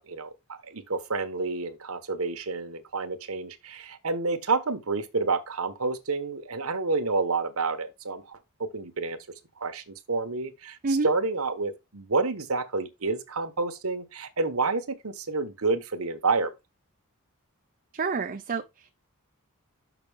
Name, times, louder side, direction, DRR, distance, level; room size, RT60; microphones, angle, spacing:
voice 1, 0.0-9.2 9.6-16.5, right 3 dB, 70° right, 1.2 m, -29 dB
voice 2, 17.9-18.9, right 4 dB, 40° right, 0.5 m, -28 dB
6.1 x 6.0 x 3.5 m
head